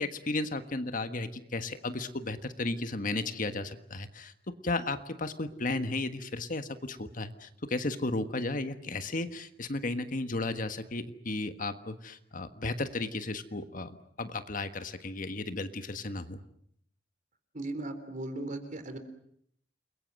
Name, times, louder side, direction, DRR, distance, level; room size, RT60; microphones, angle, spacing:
voice 1, 0.0-4.3 4.6-16.4, left 2 dB, 45° left, 9 dB, 1.5 m, -34 dB
voice 2, 17.5-19.0, right 2 dB, 45° right, 8 dB, 3.7 m, -37 dB
29.5 x 22.0 x 7.7 m, 0.69 s
head